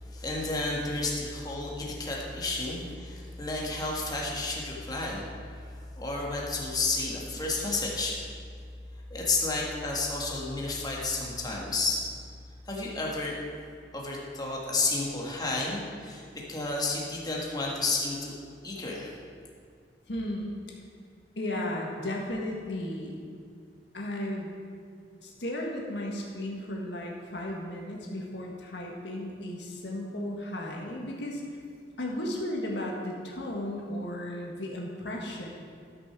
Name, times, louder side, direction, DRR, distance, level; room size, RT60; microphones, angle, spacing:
voice 1, 0.1-5.3 5.7-8.2 9.1-12.0 12.7-13.4 13.9-18.4 18.6-19.1, left 3 dB, 25° left, -3 dB, 1.8 m, -31 dB
voice 2, 20.1-20.8 21.3-23.1 23.9-24.5 25.2-31.4 32.0-35.5, left 1 dB, 80° left, -1 dB, 1.7 m, -35 dB
12.5 x 6.3 x 6.1 m, 2.2 s
head